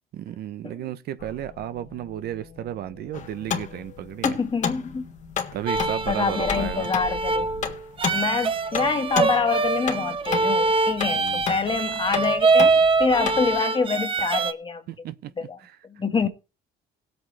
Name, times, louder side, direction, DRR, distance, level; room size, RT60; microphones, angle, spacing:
voice 1, 0.1-4.4 5.5-6.9 11.1-11.4 14.9-15.8, right 12 dB, 70° right, 1.0 m, -33 dB
sound 1, 1.2-7.7, left 8 dB, 65° left, 2.3 m, -43 dB
sound 2, 3.1-13.6, left 7 dB, 45° left, 1.6 m, -32 dB
voice 2, 4.2-5.1 6.1-7.5 8.1-14.8 15.4-15.6 15.8-16.3, left 5 dB, 30° left, 1.7 m, -26 dB
sound 3, 5.7-14.5, right 3 dB, 30° right, 0.9 m, -24 dB
18.0 x 8.2 x 3.4 m
cardioid pair, 110°, 17 cm